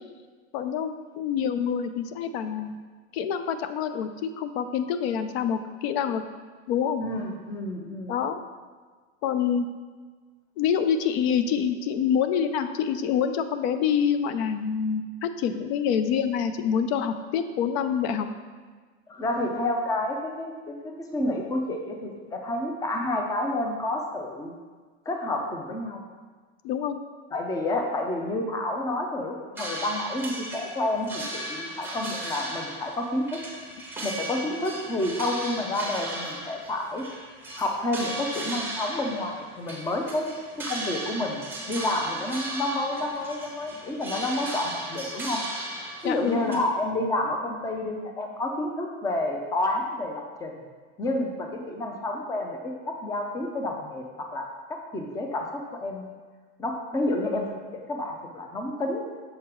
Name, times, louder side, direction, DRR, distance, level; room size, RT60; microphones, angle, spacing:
voice 1, 0.5-2.8 3.1-6.2 6.7-7.0 8.1-8.4 9.2-9.7 10.6-18.3 26.6-27.0 46.0-46.6, left 7 dB, 70° left, 10 dB, 0.5 m, -26 dB
voice 2, 7.0-8.2 19.1-24.5 25.1-26.0 27.3-33.4 34.0-37.1 37.6-40.3 40.6-45.4 46.0-50.6 51.0-56.0 56.6-57.4 57.7-59.0, left 1 dB, 10° left, 2 dB, 0.5 m, -29 dB
sound 1, 29.6-46.6, right 1 dB, 5° right, 1.0 m, -36 dB
6.6 x 3.6 x 4.4 m, 1.5 s
supercardioid pair, 135°, 34 cm